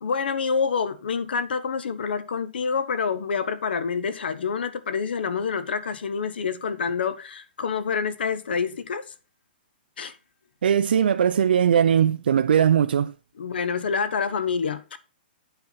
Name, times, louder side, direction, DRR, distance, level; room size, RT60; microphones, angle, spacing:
voice 1, 0.0-9.0 10.0-10.1 13.4-15.0, left 6 dB, 75° left, 1.1 m, -27 dB
voice 2, 10.6-13.1, right 8 dB, 75° right, 0.4 m, -20 dB
8.9 x 4.4 x 5.7 m
hypercardioid pair, 180°, 5 cm